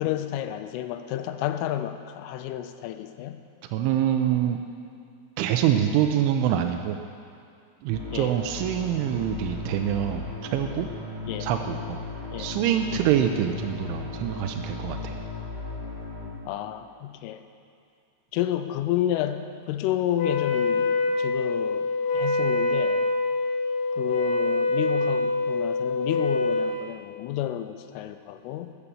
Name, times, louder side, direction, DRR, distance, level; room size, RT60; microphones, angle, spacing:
voice 1, 0.0-3.4 8.1-8.3 11.3-11.5 12.3-12.5 13.0-13.1 16.5-17.4 18.3-23.1 24.0-28.7, left 12 dB, 90° left, 10 dB, 3.2 m, -30 dB
voice 2, 3.7-4.6 5.4-7.0 7.8-10.9 11.4-12.0 12.4-15.1, right 10 dB, 85° right, 4 dB, 3.0 m, -25 dB
sound 1, 7.9-16.3, left 3 dB, 30° right, 3.7 m, -36 dB
Wind instrument woodwind instrument, 20.1-26.8, left 3 dB, 70° left, 2.1 m, -25 dB
13.0 x 9.9 x 6.9 m, 2.5 s
omnidirectional pair, 5.7 m